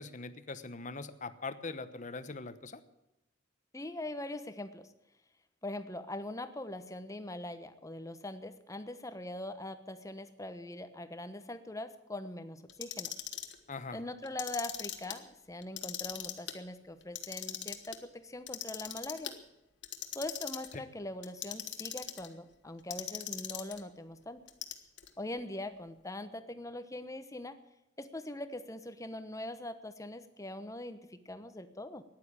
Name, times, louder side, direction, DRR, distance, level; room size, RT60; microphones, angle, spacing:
voice 1, 0.0-2.8 13.7-14.0, left 3 dB, 40° left, 11 dB, 1.0 m, -42 dB
voice 2, 3.7-4.9 5.6-13.1 13.9-19.3 20.1-24.4 25.2-27.6 28.0-32.0, left 1 dB, 15° left, 10 dB, 1.0 m, -42 dB
Clock, 12.7-13.5 14.2-15.2 15.6-16.5 17.0-18.0 18.5-19.3 19.8-20.7 21.2-22.3 22.9-23.8 24.5-25.1, left 11 dB, 65° left, 1.6 m, -40 dB
14.5 x 10.5 x 8.7 m, 0.91 s
head